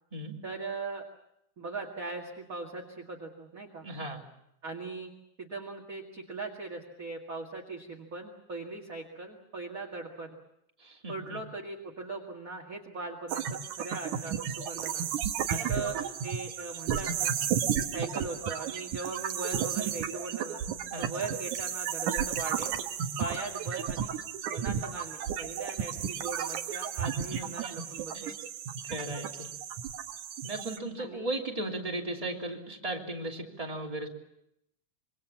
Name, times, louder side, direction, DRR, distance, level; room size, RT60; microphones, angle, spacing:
voice 1, 0.4-1.0 1.6-3.9 4.6-5.1 5.4-10.3 11.1-13.4 13.7-15.1 15.5-16.0 16.2-17.3 17.8-20.6 21.0-22.7 23.2-24.1 24.5-28.3 31.0-31.3, right 3 dB, 30° right, 0 dB, 2.2 m, -39 dB
voice 2, 3.8-4.2 10.8-11.4 15.4-16.0 19.8-19.9 20.9-21.1 27.3-27.7 28.9-29.5 30.4-34.1, right 1 dB, 10° right, 0 dB, 3.0 m, -37 dB
sound 1, 13.3-30.8, right 8 dB, 85° right, 2.8 m, -33 dB
26.5 x 23.5 x 7.2 m, 0.79 s
omnidirectional pair, 3.4 m